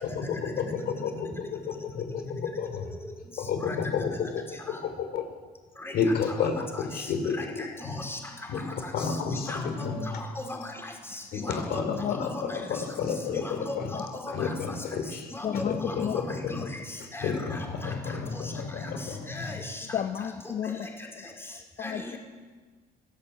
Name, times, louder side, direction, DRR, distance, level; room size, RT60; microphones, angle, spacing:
voice 1, 0.0-2.9 3.4-5.2 5.9-7.9 8.5-10.0 11.3-13.9 14.3-16.6 17.2-19.6, left 5 dB, 70° left, 6 dB, 4.5 m, -31 dB
voice 2, 7.4-8.2 9.5-9.9 10.2-11.8 12.1-12.6 13.3-14.5 15.3-16.6 17.1-17.9 19.3-19.9 21.8-22.1, left 2 dB, 15° left, 2 dB, 4.8 m, -38 dB
voice 3, 15.4-16.2 19.9-20.8 21.8-22.2, left 8 dB, 45° left, 7 dB, 1.3 m, -31 dB
25.5 x 17.0 x 8.5 m, 1.4 s
cardioid pair, 110°, 17 cm